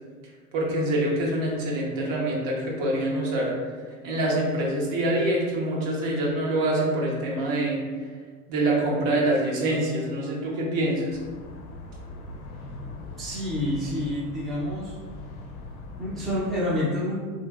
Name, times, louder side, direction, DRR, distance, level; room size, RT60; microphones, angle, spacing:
voice 1, 0.5-3.5 4.0-7.8 8.5-11.2, right 1 dB, 50° right, -3 dB, 0.9 m, -25 dB
sound 1, 11.1-16.5, left 2 dB, 40° left, 0.7 m, -41 dB
voice 2, 13.2-15.0 16.0-17.2, left 1 dB, ahead, -8 dB, 0.4 m, -28 dB
3.0 x 2.7 x 2.4 m, 1.5 s
hypercardioid pair, 90°, 44 cm